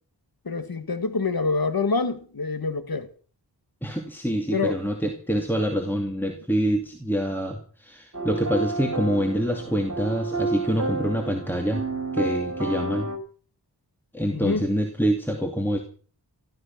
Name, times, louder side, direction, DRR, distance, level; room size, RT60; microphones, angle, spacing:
voice 1, 0.5-3.1 4.5-4.8 14.3-14.7, left 4 dB, 55° left, 1.8 m, -26 dB
voice 2, 3.8-11.8 12.1-13.1 14.1-15.8, equal, 5° left, 2.5 m, -26 dB
sound 1, 8.1-13.2, right 3 dB, 40° right, 3.2 m, -30 dB
15.0 x 14.5 x 5.9 m
wide cardioid pair, 55°, 41 cm